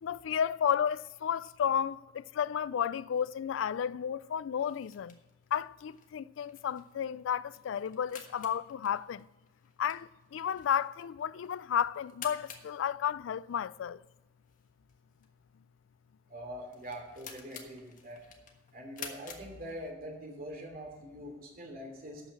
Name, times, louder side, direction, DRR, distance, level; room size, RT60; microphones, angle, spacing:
voice 1, 0.0-5.2 5.5-9.3 9.8-14.0, left 8 dB, 75° left, 0.3 m, -32 dB
sound 1, 4.6-20.2, left 6 dB, 45° left, 1.4 m, -52 dB
voice 2, 16.3-18.2 18.7-22.2, equal, 50° right, 2.9 m, -43 dB
12.0 x 5.7 x 7.3 m
head